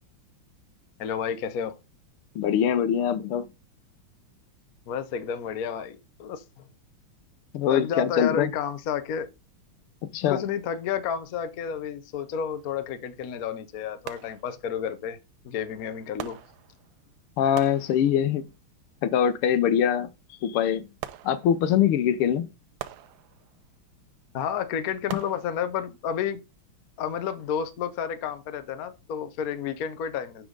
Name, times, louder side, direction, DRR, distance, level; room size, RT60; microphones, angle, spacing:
voice 1, 1.0-1.7 4.9-6.6 7.7-9.3 10.3-15.2 15.4-16.4 24.3-26.4 27.0-30.5, left 7 dB, 55° left, 1.1 m, -31 dB
voice 2, 2.3-3.5 7.5-8.5 10.1-10.4 17.4-18.4 19.0-20.1 20.4-20.8 21.2-22.5, left 9 dB, 80° left, 1.7 m, -23 dB
sound 1, 12.5-12.7 14.1-14.9 16.2-17.1 17.6-18.5 21.0-21.9 22.8-23.7 25.1-26.0 26.6-26.7, right 12 dB, 75° right, 1.3 m, -42 dB
11.5 x 4.9 x 3.8 m
omnidirectional pair, 2.4 m